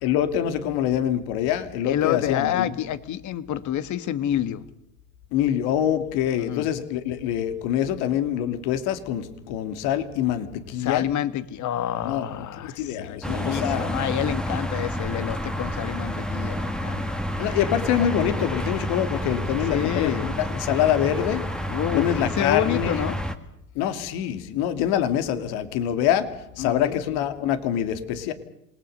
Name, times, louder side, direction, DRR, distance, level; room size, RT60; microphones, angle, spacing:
voice 1, 0.0-2.7 5.3-11.1 12.0-12.4 12.8-13.9 17.4-21.5 21.9-22.9 23.7-28.3, left 10 dB, 60° left, 9 dB, 2.7 m, -25 dB
voice 2, 1.8-4.6 6.4-6.7 10.8-17.1 19.7-20.3 21.7-23.2 26.6-27.0, left 11 dB, 45° left, 13 dB, 1.8 m, -28 dB
sound 1, 13.2-23.3, equal, ahead, 2.0 m, -29 dB
28.0 x 20.0 x 6.7 m, 0.79 s
hypercardioid pair, 95°, 43 cm